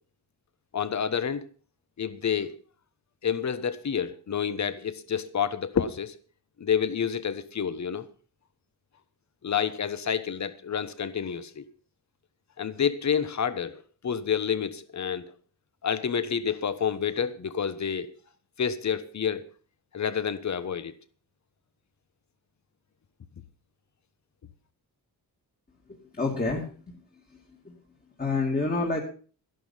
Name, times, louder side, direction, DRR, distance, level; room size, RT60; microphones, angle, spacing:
voice 1, 0.7-1.5 2.0-2.5 3.2-6.1 6.6-8.1 9.4-11.6 12.6-15.3 15.8-18.1 18.6-19.4 19.9-20.9, left 7 dB, 45° left, 1.2 m, -29 dB
voice 2, 26.1-26.7 27.3-27.7 28.2-29.0, left 3 dB, 20° left, 2.5 m, -28 dB
13.5 x 11.5 x 5.7 m
wide cardioid pair, 155°, 40 cm